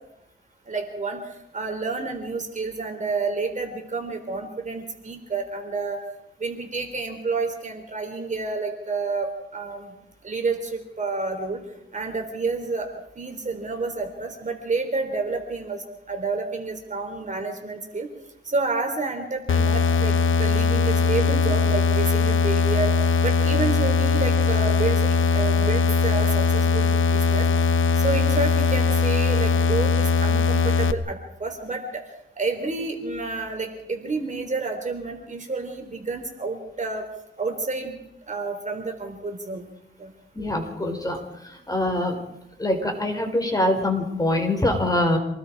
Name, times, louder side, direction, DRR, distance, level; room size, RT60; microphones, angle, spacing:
voice 1, 0.7-6.0 6.4-10.0 10.2-11.6 11.9-12.9 13.2-18.1 18.4-22.9 23.2-27.5 27.9-32.0 32.3-37.0 37.4-38.0 38.3-39.6 40.0-40.1, right 3 dB, 35° right, 4 dB, 4.0 m, -29 dB
sound 1, 19.5-30.9, left 5 dB, 70° left, 1.2 m, -20 dB
voice 2, 40.3-41.2 41.7-42.2 42.6-45.2, left 1 dB, 20° left, 3 dB, 5.0 m, -23 dB
27.5 x 19.5 x 4.9 m, 0.82 s
wide cardioid pair, 110°, 21 cm